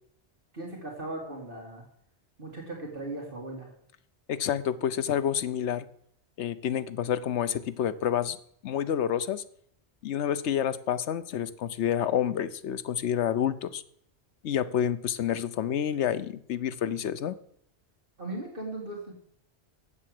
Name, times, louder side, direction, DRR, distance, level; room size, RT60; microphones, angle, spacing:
voice 1, 0.5-1.8 2.4-3.7 18.2-19.1, right 2 dB, 50° right, -1 dB, 2.3 m, -38 dB
voice 2, 4.3-5.9 6.4-8.4 8.6-9.4 10.0-13.8 14.4-17.4, left 9 dB, 85° left, 13 dB, 1.0 m, -28 dB
7.9 x 7.6 x 7.7 m, 0.65 s
omnidirectional pair, 1.2 m